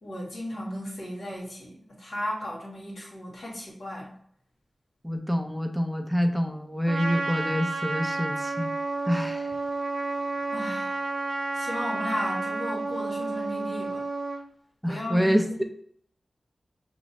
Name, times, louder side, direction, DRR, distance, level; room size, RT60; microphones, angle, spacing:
voice 1, 0.0-4.1 10.5-11.0 11.5-14.0 14.9-15.6, equal, 80° left, -4 dB, 1.7 m, -35 dB
voice 2, 5.0-8.7 9.1-9.6 14.8-15.6, equal, 5° right, 5 dB, 0.5 m, -27 dB
Trumpet, 6.9-14.5, right 3 dB, 85° right, 0.8 m, -31 dB
5.8 x 3.1 x 2.6 m, 0.64 s
cardioid pair, 60°, 0 cm